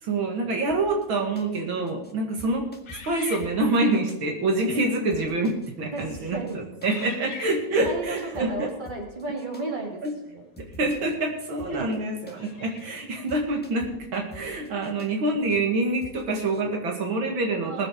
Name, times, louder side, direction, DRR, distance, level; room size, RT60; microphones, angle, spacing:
voice 1, 0.0-2.7 3.1-8.7 10.0-10.1 10.8-17.9, right 2 dB, 75° right, 2 dB, 2.6 m, -26 dB
sound 1, 0.7-1.1 1.3-1.6 1.9-2.1 2.4-4.2 4.6-4.7 5.1-5.7 6.0-6.5 6.8-7.1 7.3-7.6 7.8-9.6 10.0-10.1 10.6-11.1 11.4-12.0 12.3-12.5 12.8-13.0 13.3-15.1 15.5-15.6 16.0-16.6, equal, 5° left, 1.6 m, -47 dB
sound 2, 2.9-4.0 4.8-5.1 5.7-6.1 6.8-8.0 10.7-10.8 12.3-13.1, left 5 dB, 75° left, 2.5 m, -43 dB
voice 2, 5.9-6.6 7.8-10.0 10.3-10.5 11.7-12.0 14.7-14.9 17.5-17.9, right 2 dB, 20° right, -1 dB, 3.2 m, -34 dB
19.5 x 7.6 x 5.1 m, 0.93 s
omnidirectional pair, 2.2 m